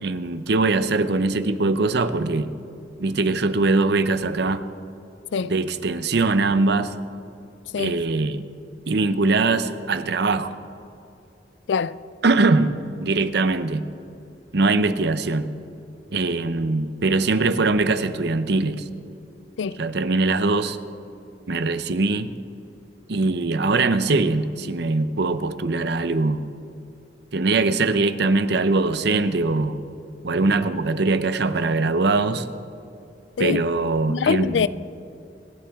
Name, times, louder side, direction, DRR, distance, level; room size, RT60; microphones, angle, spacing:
voice 1, 0.0-2.5 3.0-4.6 5.4-6.9 7.8-8.5 8.9-10.6 12.2-13.8 14.5-15.5 16.1-18.8 19.8-20.8 21.5-22.3 23.1-26.4 27.3-29.8 30.2-32.5 33.4-34.7, right 3 dB, 65° right, 0.7 m, -22 dB
voice 2, 11.7-12.0 19.6-19.8 33.4-33.6 34.1-34.7, left 6 dB, 80° left, 0.4 m, -23 dB
26.0 x 11.5 x 3.6 m
head